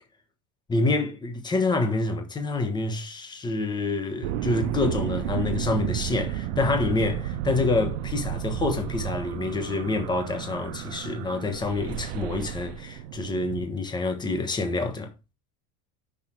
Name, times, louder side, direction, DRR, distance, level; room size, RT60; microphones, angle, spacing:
voice 1, 0.7-15.1, left 3 dB, 15° left, 1.2 m, -27 dB
sound 1, 4.2-13.7, right 12 dB, 70° right, 0.7 m, -32 dB
6.2 x 5.2 x 4.5 m
supercardioid pair, 150°, 34 cm